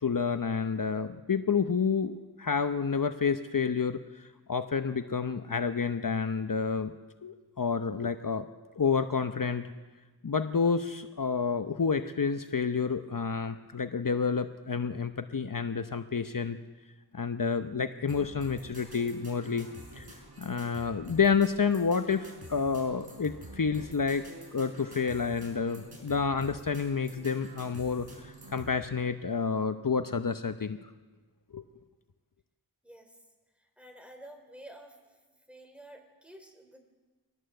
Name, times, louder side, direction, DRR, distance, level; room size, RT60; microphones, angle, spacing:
voice 1, 0.0-6.9 7.2-8.5 8.8-9.7 10.2-16.6 17.1-19.7 19.9-20.1 20.4-24.2 24.5-30.9 31.5-31.6, left 5 dB, 55° left, 8 dB, 0.8 m, -29 dB
sound 1, 18.1-28.7, right 1 dB, 70° right, 5.9 m, -48 dB
voice 2, 32.8-33.2 33.8-35.0 35.5-36.8, right 1 dB, 5° right, 4 dB, 4.1 m, -50 dB
23.0 x 18.0 x 7.9 m, 1.3 s
wide cardioid pair, 45°, 39 cm